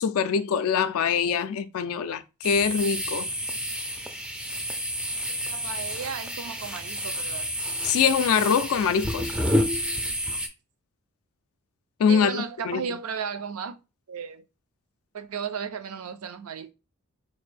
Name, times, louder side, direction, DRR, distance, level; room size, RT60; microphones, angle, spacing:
voice 1, 0.0-3.3 7.8-9.3 12.0-12.8, left 7 dB, 70° left, 0.3 m, -24 dB
sound 1, 2.4-10.5, equal, 5° right, 0.3 m, -30 dB
voice 2, 5.3-7.5 12.1-13.8 14.1-14.4 15.1-16.7, right 6 dB, 70° right, 0.4 m, -34 dB
4.0 x 2.5 x 3.3 m
head